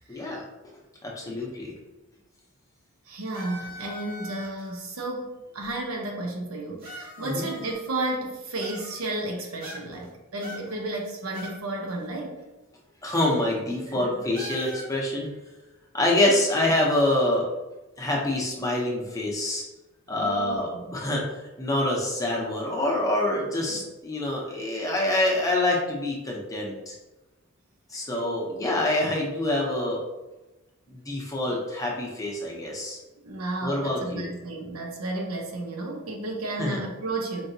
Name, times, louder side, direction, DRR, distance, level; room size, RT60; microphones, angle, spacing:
voice 1, 0.1-0.4 1.0-1.7 7.2-7.4 13.0-15.3 15.9-17.5 18.0-19.6 20.1-21.2 21.6-26.9 27.9-30.0 30.9-33.0 33.6-34.3 36.6-36.8, left 1 dB, 15° left, -3 dB, 0.7 m, -26 dB
voice 2, 3.1-12.4 13.9-14.2 20.1-21.0 23.7-23.8 33.2-37.4, right 2 dB, 80° right, 0 dB, 0.8 m, -33 dB
sound 1, 3.3-4.7 5.6-5.7 6.8-8.1 8.6-9.2 9.6-10.1 10.4-11.6 11.9-12.0 13.1-13.4 13.7-13.9 14.3-15.0, equal, 45° right, 0.9 m, -41 dB
4.5 x 2.7 x 2.7 m, 1.1 s
head